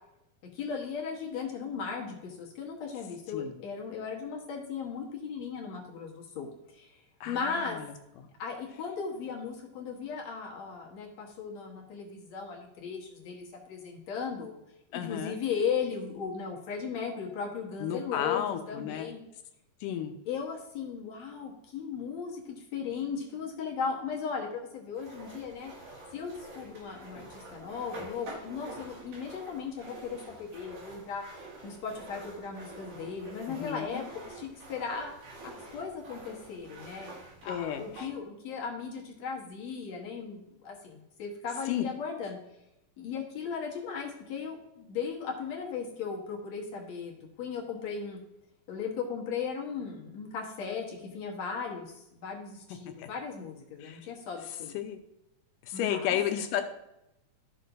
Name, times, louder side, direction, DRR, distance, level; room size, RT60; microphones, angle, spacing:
voice 1, 0.5-6.5 6.7-7.0 7.3-7.8 8.4-14.6 14.9-19.2 20.3-25.7 26.1-31.2 31.6-35.1 35.4-37.1 37.4-42.4 43.0-48.2 48.7-54.8 55.7-56.2, left 6 dB, 60° left, -1 dB, 2.2 m, -37 dB
voice 2, 7.2-7.9 8.2-8.3 14.9-15.4 17.8-19.1 19.8-20.2 33.5-33.9 37.5-38.1 41.7-41.9 52.9-53.1 53.8-54.0 54.7-55.0 55.6-56.6, left 10 dB, 80° left, 7 dB, 2.3 m, -33 dB
sound 1, 25.0-38.1, right 2 dB, 80° right, 3.7 m, -47 dB
13.5 x 6.5 x 2.6 m, 0.88 s
omnidirectional pair, 3.9 m